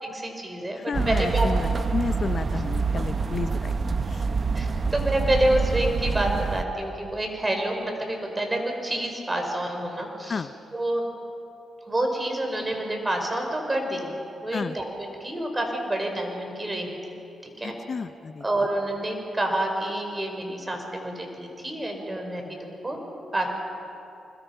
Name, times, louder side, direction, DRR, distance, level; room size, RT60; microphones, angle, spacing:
voice 1, 0.0-0.8 1.1-1.5 4.5-10.4 10.7-11.1 11.9-14.1 14.4-17.0 17.6-17.8 18.4-23.0 23.3-23.5, right 1 dB, 20° right, 3 dB, 4.9 m, -28 dB
voice 2, 0.8-4.3 10.2-10.5 14.5-14.8 17.6-18.7, left 5 dB, 50° left, 12 dB, 0.7 m, -32 dB
sound 1, 0.9-6.6, right 4 dB, 45° right, 1.0 m, -26 dB
25.5 x 21.0 x 5.7 m, 2.8 s
cardioid pair, 65°, 0 cm